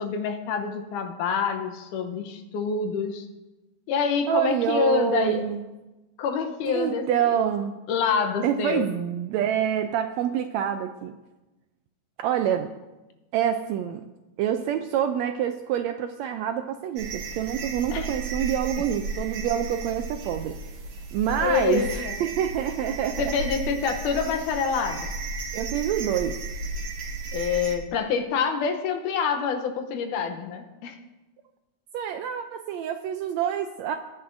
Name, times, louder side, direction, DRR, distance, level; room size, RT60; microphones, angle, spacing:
voice 1, 0.0-3.3 3.9-5.4 6.2-7.4 7.9-8.9 17.9-18.1 21.4-22.2 23.2-25.1 27.3-31.0, left 6 dB, 80° left, 6 dB, 2.4 m, -27 dB
voice 2, 4.3-5.6 6.7-7.7 8.4-11.1 12.2-12.7 13.3-14.0 14.4-20.6 21.1-23.3 25.5-26.4 31.9-34.0, right 10 dB, 80° right, 7 dB, 1.6 m, -26 dB
sound 1, 17.0-27.8, right 3 dB, 65° right, 2.5 m, -34 dB
19.5 x 10.0 x 2.6 m, 1.1 s
omnidirectional pair, 3.6 m